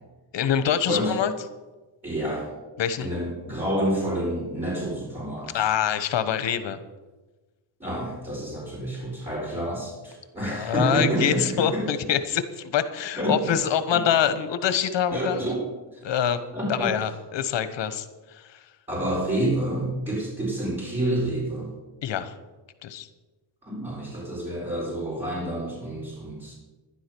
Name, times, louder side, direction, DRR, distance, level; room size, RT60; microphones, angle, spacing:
voice 1, 0.3-1.3 2.8-3.1 5.5-6.8 10.4-15.4 16.0-16.4 16.7-18.7 22.0-22.3 22.8-23.1, left 9 dB, 65° left, 11 dB, 1.3 m, -25 dB
voice 2, 2.0-2.5 3.0-5.6 7.8-11.8 13.2-13.6 13.9-14.0 15.1-15.6 15.9-16.0 16.5-16.9 18.9-21.7 23.6-26.5, right 1 dB, 15° right, -5 dB, 4.5 m, -28 dB
11.5 x 10.5 x 6.2 m, 1.2 s
cardioid pair, 100°, 48 cm